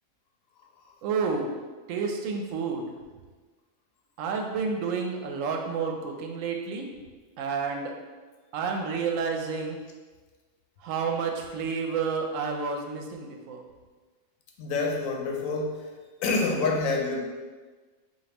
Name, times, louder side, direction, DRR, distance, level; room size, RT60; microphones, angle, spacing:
voice 1, 1.0-1.5 1.9-2.9 4.2-6.9 7.4-7.9 8.5-9.8 10.8-13.6, right 5 dB, 75° right, 2 dB, 0.9 m, -30 dB
voice 2, 14.6-15.9 16.2-17.2, left 3 dB, 85° left, 1 dB, 1.0 m, -27 dB
5.0 x 2.6 x 2.9 m, 1.4 s
omnidirectional pair, 1.4 m